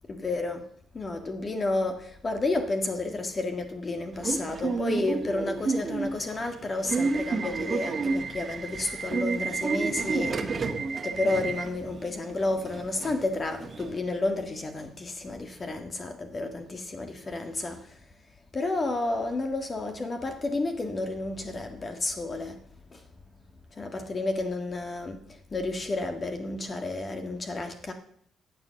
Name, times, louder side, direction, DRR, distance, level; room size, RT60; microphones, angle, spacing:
voice 1, 0.1-0.6 0.9-10.4 11.0-17.9 18.5-22.6 23.8-25.2 25.5-27.9, left 2 dB, 35° left, 1.8 m, -31 dB
Subway metro underground / Alarm, 4.2-14.0, right 4 dB, 40° right, 1.8 m, -31 dB
15.0 x 8.1 x 7.6 m
cardioid pair, 90°, 0 cm